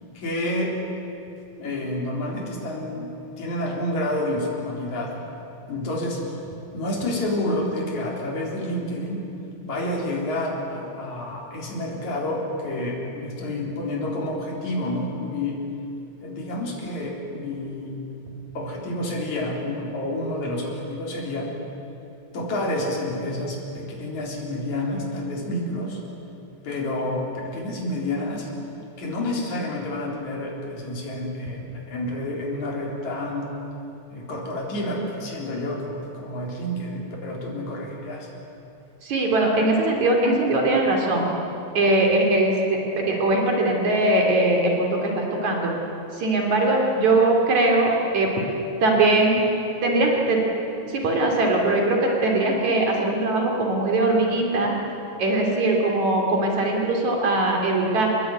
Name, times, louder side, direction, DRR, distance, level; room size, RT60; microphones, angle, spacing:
voice 1, 0.2-0.8 1.6-5.3 5.7-6.2 6.7-9.2 9.6-15.6 16.2-18.0 18.6-21.5 22.3-26.0 26.6-28.5 29.0-33.5 34.1-38.3, left 1 dB, 70° left, -2 dB, 5.3 m, -29 dB
voice 2, 39.0-41.3 41.7-45.7 46.1-48.3 48.8-49.4 49.8-50.4 50.9-54.7 55.2-58.1, right 2 dB, 70° right, 0 dB, 4.4 m, -21 dB
26.5 x 20.5 x 9.4 m, 2.8 s
omnidirectional pair, 3.4 m